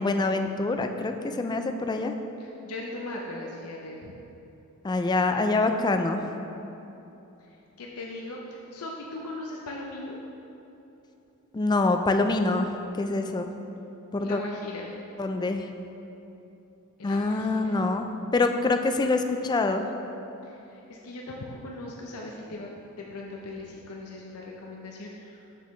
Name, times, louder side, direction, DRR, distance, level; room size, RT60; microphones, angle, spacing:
voice 1, 0.0-2.1 4.8-6.3 11.5-12.7 13.0-13.5 14.1-14.4 15.2-15.7 17.0-18.1 18.3-19.9, left 3 dB, 20° left, 6 dB, 0.3 m, -25 dB
voice 2, 2.4-4.1 7.4-10.2 14.2-14.9 17.0-17.8 20.4-22.7 23.0-25.4, left 2 dB, 85° left, -1 dB, 0.6 m, -39 dB
7.5 x 7.0 x 3.2 m, 3.0 s
head